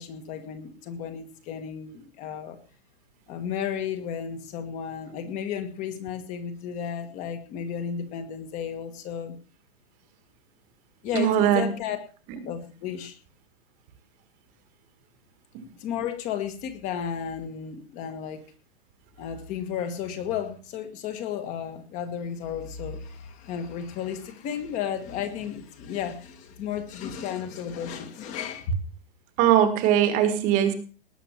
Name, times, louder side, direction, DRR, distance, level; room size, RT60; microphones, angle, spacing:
voice 1, 0.0-2.6 3.3-9.4 11.0-12.0 12.4-13.2 15.8-18.4 19.2-28.7, left 8 dB, 25° left, 9 dB, 1.7 m, -33 dB
voice 2, 11.1-11.6 29.4-30.7, right 10 dB, 25° right, 11 dB, 1.6 m, -20 dB
19.0 x 7.2 x 7.4 m, 0.39 s
supercardioid pair, 170°, 32 cm